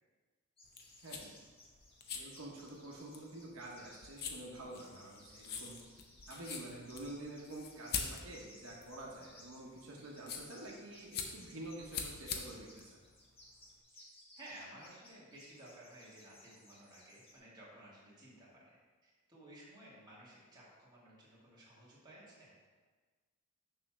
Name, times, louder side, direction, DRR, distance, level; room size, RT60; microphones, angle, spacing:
sound 1, 0.6-13.8, left 5 dB, 50° left, 0.7 m, -45 dB
sound 2, 0.6-17.4, left 1 dB, 25° left, 1.3 m, -61 dB
voice 1, 1.0-1.3 2.1-5.8 6.3-13.0, right 1 dB, 75° right, -3 dB, 1.1 m, -48 dB
voice 2, 14.3-18.8 19.0-22.5, right 1 dB, 20° right, -7 dB, 1.9 m, -55 dB
6.7 x 3.2 x 5.9 m, 1.4 s
head